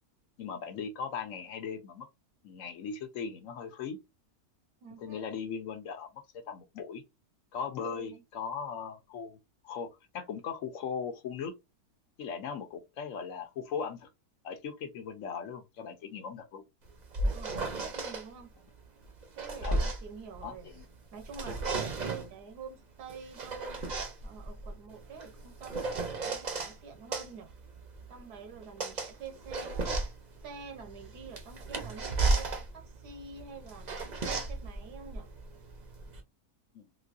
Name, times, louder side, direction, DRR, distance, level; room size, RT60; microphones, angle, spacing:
voice 1, 0.4-2.1 2.4-4.0 5.0-7.0 7.5-9.4 9.6-11.5 12.2-14.1 14.4-16.6 19.6-19.9 20.4-20.9 36.7-36.8, left 6 dB, 65° left, 1.0 m, -38 dB
voice 2, 4.8-5.3 7.8-8.2 17.3-18.5 19.4-20.7 21.1-23.8 24.2-27.6 28.1-30.0 30.4-35.3, right 6 dB, 80° right, 1.4 m, -47 dB
sound 1, 16.9-18.2 19.1-20.9 21.2-22.3 23.1-26.7 27.1-36.2, right 3 dB, 40° right, 0.6 m, -34 dB
3.8 x 2.6 x 2.4 m
omnidirectional pair, 1.7 m